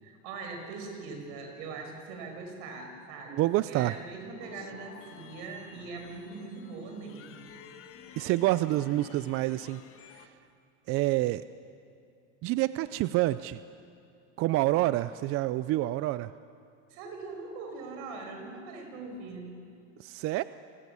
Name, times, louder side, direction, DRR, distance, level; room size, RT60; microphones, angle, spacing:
voice 1, 0.0-7.5 16.9-19.5, right 4 dB, 70° right, 4 dB, 5.6 m, -41 dB
voice 2, 3.3-4.0 8.2-9.8 10.1-10.3 10.9-11.4 12.4-13.6 14.4-16.3 20.0-20.4, right 16 dB, 40° right, 15 dB, 0.4 m, -27 dB
sound 1, 4.4-10.3, left 8 dB, 40° left, 1.6 m, -52 dB
28.0 x 18.0 x 7.0 m, 2.5 s
supercardioid pair, 130°, 34 cm